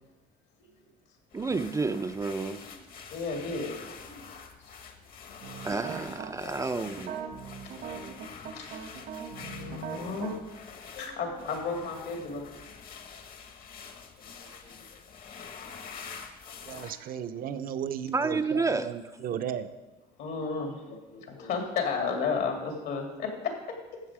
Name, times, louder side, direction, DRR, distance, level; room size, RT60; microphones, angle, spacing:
sound 1, 1.3-16.9, left 6 dB, 60° left, 1.3 m, -46 dB
voice 1, 1.3-2.6 5.6-7.2 18.1-18.9, right 4 dB, 20° right, 9 dB, 0.4 m, -30 dB
voice 2, 3.1-3.7 4.0-4.3 6.4-6.6 7.2-7.3 7.6-8.0 8.4-8.7 9.4-10.3 10.9-12.5 14.4-15.0 19.2-19.3 20.2-23.5, left 5 dB, 75° left, 2 dB, 2.5 m, -34 dB
sound 2, 5.4-6.3 7.0-10.4, right 7 dB, 75° right, 1.4 m, -40 dB
voice 3, 16.6-19.7, right 9 dB, 60° right, 11 dB, 0.7 m, -35 dB
13.0 x 7.8 x 4.9 m, 1.1 s
cardioid pair, 110°, 17 cm